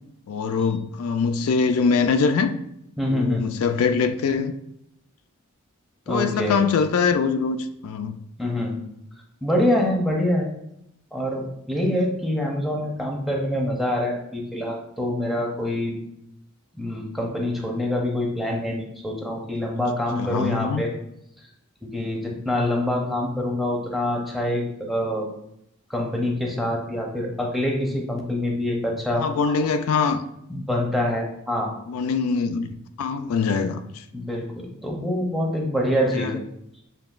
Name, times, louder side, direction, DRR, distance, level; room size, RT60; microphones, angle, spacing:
voice 1, 0.3-2.5 3.1-4.5 6.1-8.2 20.2-20.8 29.2-30.2 31.9-32.7 33.0-34.0 36.1-36.4, left 5 dB, 70° left, 0.3 m, -23 dB
voice 2, 3.0-3.5 6.1-6.6 8.4-8.8 9.4-10.5 11.1-15.9 16.8-20.9 21.8-25.3 25.9-29.3 29.6-29.7 30.5-31.7 34.1-36.4, left 1 dB, ahead, 0.7 m, -25 dB
6.9 x 2.8 x 2.4 m
head